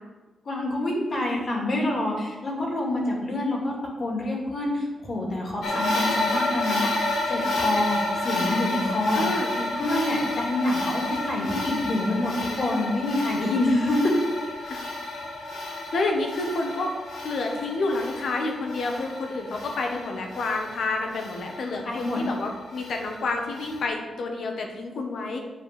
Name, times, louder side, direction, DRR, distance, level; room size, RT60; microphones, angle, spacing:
voice 1, 0.5-14.1 21.8-22.2, left 1 dB, 40° left, -1 dB, 2.2 m, -27 dB
sound 1, 5.6-23.8, left 2 dB, 75° left, 2.0 m, -31 dB
voice 2, 9.1-9.5 14.7-14.8 15.6-16.9 17.2-25.4, left 3 dB, 60° left, 3 dB, 1.4 m, -29 dB
8.7 x 4.7 x 6.6 m, 1.3 s
wide cardioid pair, 170°, 0 cm